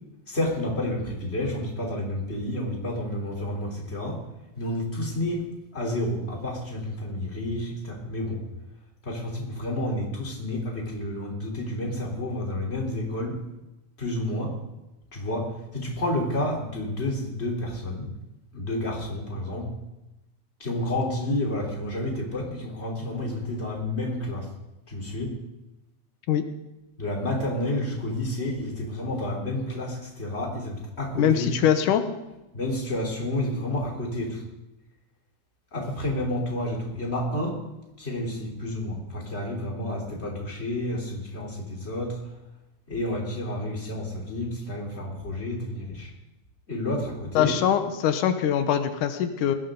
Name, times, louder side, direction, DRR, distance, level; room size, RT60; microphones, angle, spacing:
voice 1, 0.3-4.2 4.5-5.4 5.7-8.4 9.0-13.4 14.0-14.5 15.1-18.1 18.5-19.7 20.6-24.5 24.9-25.4 27.0-31.6 32.5-34.4 35.7-37.6 38.0-42.3 42.9-46.1 46.7-47.5, left 1 dB, 20° left, -1 dB, 3.8 m, -30 dB
voice 2, 31.2-32.0 47.4-49.6, left 9 dB, 90° left, 8 dB, 2.6 m, -23 dB
20.0 x 17.5 x 3.9 m, 0.99 s
omnidirectional pair, 3.5 m